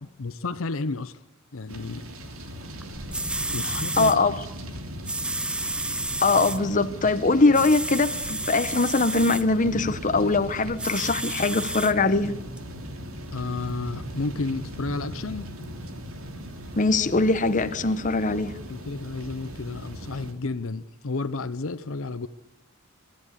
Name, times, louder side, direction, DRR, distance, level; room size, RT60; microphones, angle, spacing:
voice 1, 0.2-1.2 1.5-2.1 3.5-4.1 13.3-15.5 18.7-22.3, left 3 dB, 65° left, 0.7 m, -31 dB
sound 1, 1.7-20.3, equal, 70° right, 3.0 m, -38 dB
sound 2, 2.8-2.9 3.1-4.2 5.0-6.6 7.5-9.4 10.8-11.9 12.6-12.7, right 2 dB, 5° right, 0.7 m, -31 dB
voice 2, 3.6-4.4 6.2-12.3 16.8-18.5, left 3 dB, 35° left, 1.0 m, -22 dB
27.5 x 13.5 x 8.2 m
head